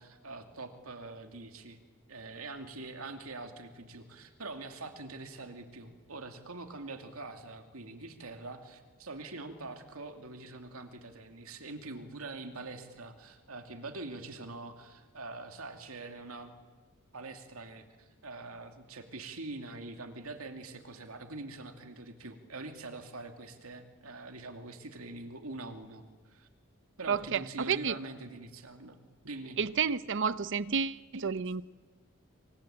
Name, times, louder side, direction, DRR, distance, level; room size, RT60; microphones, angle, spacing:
voice 1, 0.0-1.8 2.1-16.5 17.1-26.5 27.0-29.0 29.2-29.6, right 2 dB, 85° right, 6 dB, 2.5 m, -44 dB
voice 2, 27.1-27.9 29.6-31.6, right 6 dB, 60° right, 16 dB, 0.8 m, -30 dB
27.0 x 23.5 x 8.8 m, 1.4 s
head